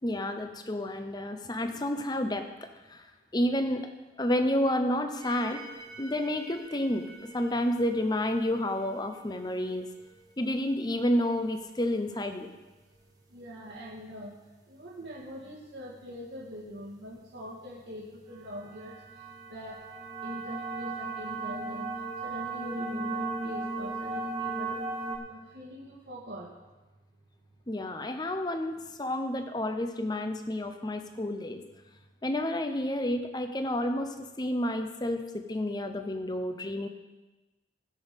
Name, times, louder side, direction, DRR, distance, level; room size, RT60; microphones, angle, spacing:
voice 1, 0.0-3.9 4.2-5.6 6.0-9.9 10.4-12.5 27.7-31.6 32.2-36.9, left 1 dB, 25° left, 7 dB, 0.8 m, -30 dB
sound 1, 5.2-11.6 18.5-25.2, right 3 dB, 20° right, 1.4 m, -38 dB
voice 2, 13.3-14.3 14.7-19.0 19.5-19.8 20.2-21.9 22.2-24.8 25.3-26.5, equal, 80° right, -5 dB, 2.0 m, -43 dB
16.0 x 6.2 x 5.4 m, 1.1 s
head